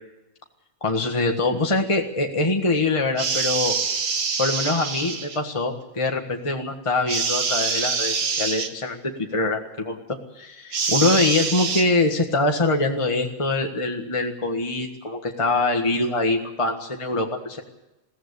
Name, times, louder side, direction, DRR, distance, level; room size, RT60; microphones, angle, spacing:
voice 1, 0.8-3.8 4.4-10.0 10.4-17.6, left 2 dB, 20° left, 2 dB, 1.6 m, -24 dB
sound 1, 3.2-5.4 7.1-8.7 10.7-11.8, right 5 dB, 90° right, 2.0 m, -25 dB
21.5 x 16.5 x 8.4 m, 0.96 s
omnidirectional pair, 1.5 m